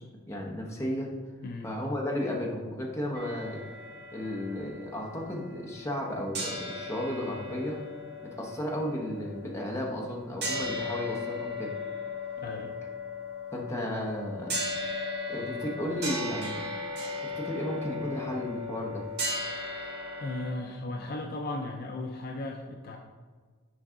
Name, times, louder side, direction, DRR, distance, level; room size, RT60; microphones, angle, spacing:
voice 1, 0.3-1.1 1.6-3.6 4.1-7.8 8.2-11.7 13.5-14.5 15.3-16.7 17.4-19.0, left 1 dB, 15° left, -2 dB, 0.8 m, -34 dB
sound 1, 3.1-6.1 6.3-20.5, left 2 dB, 50° right, 1.5 m, -37 dB
voice 2, 12.4-12.7 19.8-19.9 20.2-23.0, left 2 dB, 45° left, 3 dB, 0.4 m, -36 dB
6.3 x 4.7 x 3.7 m, 1.5 s
head